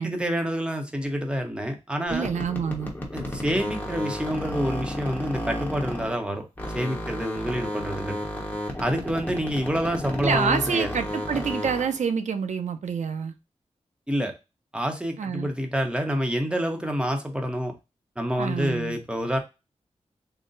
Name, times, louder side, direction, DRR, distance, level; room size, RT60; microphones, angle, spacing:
voice 1, 0.0-2.3 3.1-6.4 6.7-8.2 8.8-10.9 14.1-14.3 14.7-17.7 18.2-19.4, equal, 10° right, 0.8 m, -27 dB
sound 1, 2.1-6.3 6.6-12.0, equal, 15° left, 1.0 m, -32 dB
voice 2, 2.1-2.9 10.2-13.3 15.2-15.5 18.4-19.0, right 6 dB, 80° right, 0.5 m, -27 dB
3.9 x 2.1 x 3.8 m
wide cardioid pair, 115°, 12 cm